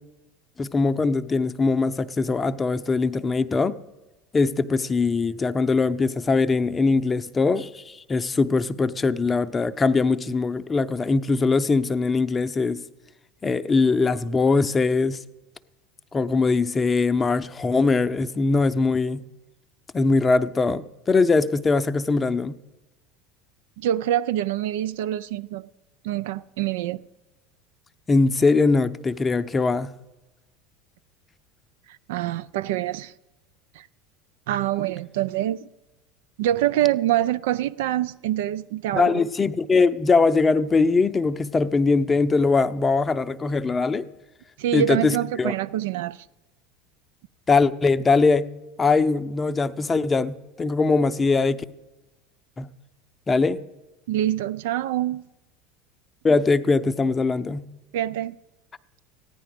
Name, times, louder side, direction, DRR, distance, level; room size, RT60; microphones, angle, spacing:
voice 1, 0.6-3.8 4.3-12.8 13.4-15.2 16.1-19.2 19.9-22.6 28.1-29.9 38.9-44.1 44.7-45.5 47.5-48.5 48.8-51.7 52.6-52.7 53.3-53.6 56.2-57.7, left 4 dB, 25° left, 0.6 m, -21 dB
voice 2, 23.8-25.7 26.0-27.0 32.1-33.1 33.8-33.9 34.5-35.6 36.4-39.2 44.6-46.2 54.1-55.2 57.9-58.4, right 13 dB, 70° right, 0.3 m, -25 dB
14.5 x 10.0 x 5.0 m
hypercardioid pair, 75°, 0 cm